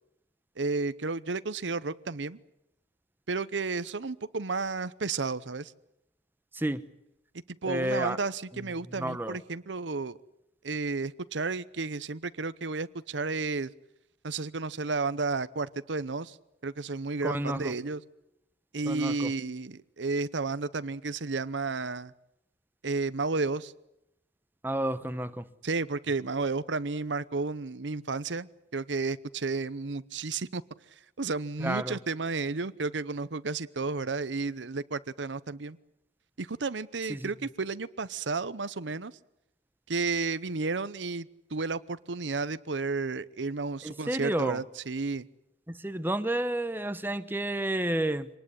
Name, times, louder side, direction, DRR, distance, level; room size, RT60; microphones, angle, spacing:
voice 1, 0.6-2.4 3.3-5.7 7.6-10.2 10.6-13.7 14.2-16.4 16.6-18.0 18.7-22.1 22.8-23.7 25.6-28.5 28.7-30.6 31.2-35.8 36.4-39.1 39.9-45.3, right 3 dB, 80° right, 16 dB, 0.9 m, -32 dB
voice 2, 7.7-8.2 9.0-9.4 17.2-17.7 18.9-19.3 24.6-25.5 31.6-32.0 37.1-37.3 43.8-44.6 45.7-48.3, right 1 dB, 10° right, 11 dB, 1.0 m, -30 dB
25.5 x 19.5 x 9.8 m, 0.85 s
head